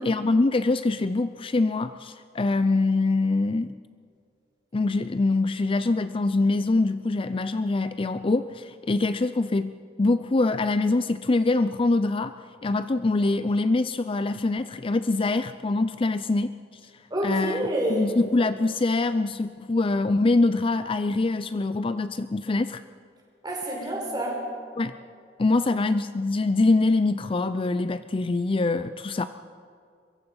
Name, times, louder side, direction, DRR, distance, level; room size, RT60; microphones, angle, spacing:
voice 1, 0.0-3.8 4.7-12.3 12.6-16.5 16.8-16.9 17.2-17.6 17.9-22.8 24.8-24.9 25.4-29.3, left 3 dB, 30° left, 12 dB, 0.5 m, -24 dB
voice 2, 17.1-18.1 23.4-24.4, right 1 dB, 25° right, -1 dB, 5.3 m, -28 dB
23.5 x 22.5 x 5.5 m, 2.2 s
head